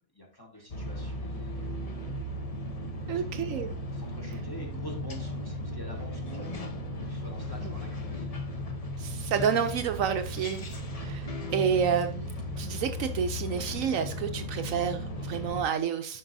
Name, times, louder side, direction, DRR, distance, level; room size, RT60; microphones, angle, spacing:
voice 1, 0.1-2.0 2.8-8.3, left 1 dB, 15° left, 0 dB, 1.4 m, -46 dB
sound 1, 0.7-15.6, left 1 dB, 30° left, 0.7 m, -36 dB
voice 2, 3.1-3.7 7.6-7.7 9.0-10.6 11.0-16.2, right 7 dB, 70° right, 7 dB, 0.9 m, -29 dB
11.0 x 4.6 x 2.6 m, 0.43 s
omnidirectional pair, 1.5 m